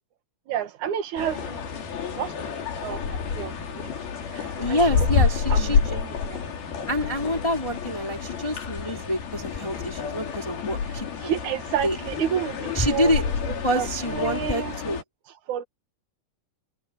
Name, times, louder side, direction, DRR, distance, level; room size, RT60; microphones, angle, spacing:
voice 1, 0.5-1.6 2.1-2.5 2.8-3.9 4.3-5.1 5.5-6.4 11.2-14.8 15.5-15.6, right 10 dB, 60° right, 2.6 m, -31 dB
sound 1, 1.2-15.0, left 6 dB, 85° left, 5.3 m, -29 dB
voice 2, 4.6-5.9 6.9-11.3 11.8-12.0 12.7-13.2 13.6-15.0, equal, 10° left, 3.5 m, -27 dB
omnidirectional pair, 4.2 m